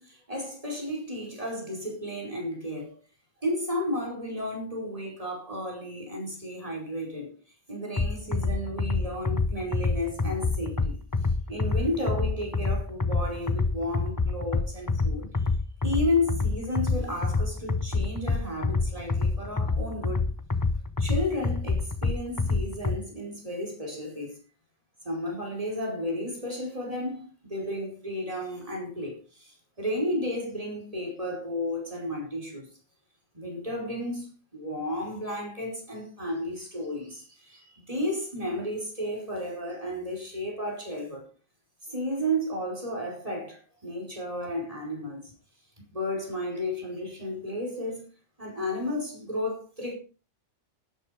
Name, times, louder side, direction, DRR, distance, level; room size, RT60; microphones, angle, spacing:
voice 1, 0.0-3.0 3.4-7.3 7.7-11.0 11.5-15.5 15.8-20.3 21.0-24.4 25.1-32.7 33.3-41.3 41.9-45.3 45.9-48.0 48.4-50.0, left 1 dB, 30° right, 5.1 m, -33 dB
sound 1, 8.0-23.0, left 3 dB, 20° left, 0.8 m, -27 dB
12.5 x 10.5 x 5.1 m
omnidirectional pair, 1.2 m